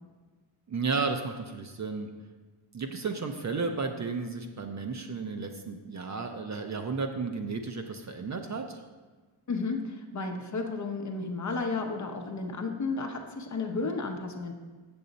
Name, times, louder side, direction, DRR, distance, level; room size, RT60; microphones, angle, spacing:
voice 1, 0.7-2.1 2.7-8.8, right 4 dB, 40° right, 5 dB, 0.5 m, -33 dB
voice 2, 9.5-14.5, left 3 dB, 40° left, 4 dB, 0.8 m, -33 dB
7.5 x 7.0 x 4.0 m, 1.4 s
wide cardioid pair, 165°, 46 cm